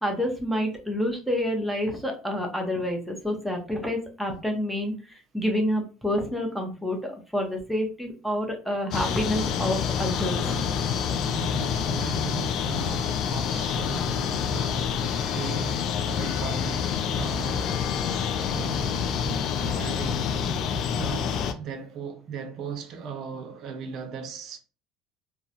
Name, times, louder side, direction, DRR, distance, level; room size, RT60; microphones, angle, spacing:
voice 1, 0.0-7.0 7.3-10.7, equal, ahead, 0.8 m, -28 dB
sound 1, 8.9-21.5, left 7 dB, 55° left, 0.3 m, -27 dB
voice 2, 11.3-17.8 18.2-20.4 20.9-24.6, right 6 dB, 55° right, 0.6 m, -38 dB
2.3 x 2.1 x 2.8 m
hypercardioid pair, 85°, 0 cm